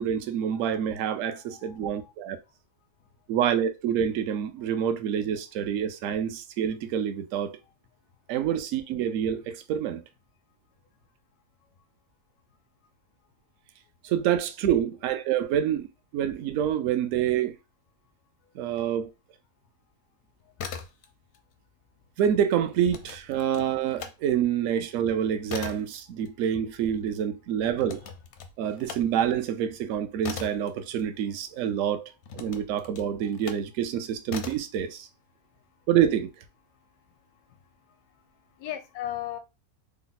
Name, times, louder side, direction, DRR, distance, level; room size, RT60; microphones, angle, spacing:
voice 1, 0.0-2.4 3.3-7.6 8.3-10.0 14.0-15.9 16.1-17.6 18.6-19.1 22.2-28.0 28.6-35.1 35.9-36.3, right 9 dB, 70° right, 0.8 m, -27 dB
voice 2, 1.4-2.1 4.6-4.8 37.5-37.6 37.9-38.0 38.6-39.4, left 12 dB, 80° left, 1.1 m, -37 dB
sound 1, 20.4-21.4 21.7-24.2 24.6-31.6 32.2-33.7 34.3-34.8, left 6 dB, 65° left, 0.7 m, -41 dB
3.3 x 2.0 x 3.9 m
omnidirectional pair, 1.6 m